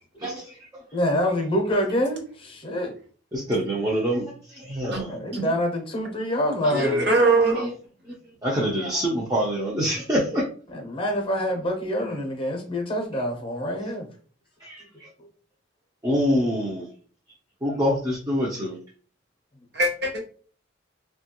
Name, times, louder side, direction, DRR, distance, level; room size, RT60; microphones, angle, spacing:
voice 1, 0.2-0.7 3.3-5.2 6.6-7.7 8.0-8.1 8.4-10.4 14.6-15.1 16.0-16.9 17.6-18.8, equal, 20° right, 0.5 m, -26 dB
voice 2, 0.9-2.9 5.1-7.1 10.7-14.1 15.2-15.3, equal, 30° left, 0.7 m, -26 dB
voice 3, 6.7-7.7 19.7-20.2, right 2 dB, 60° right, 0.8 m, -21 dB
2.9 x 2.3 x 2.9 m
head